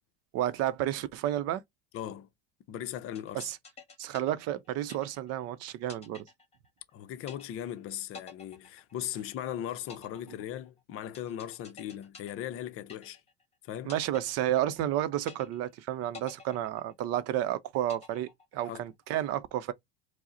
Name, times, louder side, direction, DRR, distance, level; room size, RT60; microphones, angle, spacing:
voice 1, 0.3-1.6 3.3-3.6 4.0-6.2 13.9-19.7, right 12 dB, 55° right, 0.6 m, -31 dB
voice 2, 1.9-2.3 2.7-3.5 6.9-13.2 13.6-13.9 18.6-18.8, left 11 dB, 45° left, 0.6 m, -38 dB
sound 1, 3.1-5.4 5.9-6.9 7.3-7.8 8.1-9.4 9.9-13.4 13.9-14.9 15.3-15.8 16.1-17.4 17.9-18.9, left 4 dB, 20° left, 1.5 m, -50 dB
4.6 x 2.1 x 3.8 m
supercardioid pair, 95°, 31 cm